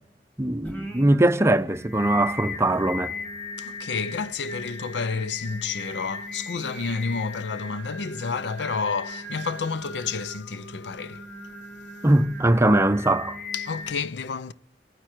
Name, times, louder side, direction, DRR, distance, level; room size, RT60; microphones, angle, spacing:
voice 1, 0.4-3.1 12.0-13.4, right 1 dB, 15° right, 0.6 m, -21 dB
Singing, 0.6-14.0, left 2 dB, 10° left, 2.0 m, -38 dB
voice 2, 3.6-11.3 13.5-14.5, left 5 dB, 80° left, 0.6 m, -30 dB
29.0 x 9.7 x 4.5 m
head